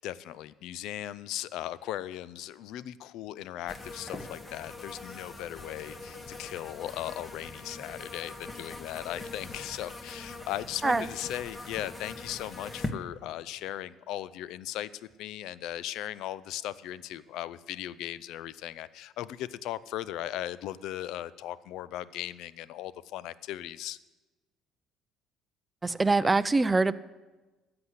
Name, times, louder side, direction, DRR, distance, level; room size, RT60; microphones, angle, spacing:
voice 1, 0.0-14.9 15.2-24.0, left 13 dB, 70° left, 18 dB, 0.5 m, -38 dB
sound 1, 3.7-12.9, left 2 dB, 25° left, 1.5 m, -42 dB
voice 2, 25.8-26.9, right 3 dB, 20° right, 17 dB, 0.6 m, -24 dB
13.5 x 7.9 x 8.2 m, 1.2 s
hypercardioid pair, 65°, 0 cm